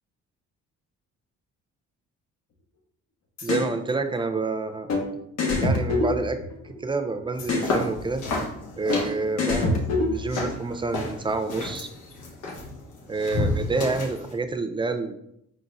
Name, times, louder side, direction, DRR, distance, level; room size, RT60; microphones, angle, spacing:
sound 1, 3.4-3.7 4.9-5.0 5.4-6.8 7.4-7.7 8.9-9.0 9.4-10.5, left 3 dB, 65° left, 1.1 m, -25 dB
voice 1, 3.4-4.9 5.6-6.4 6.8-8.2 8.8-11.9 13.1-15.2, right 3 dB, 15° right, 8 dB, 0.4 m, -28 dB
sound 2, 7.3-14.3, left 2 dB, 80° left, 1.2 m, -32 dB
4.4 x 3.9 x 2.6 m, 0.76 s
cardioid pair, 90°, 30 cm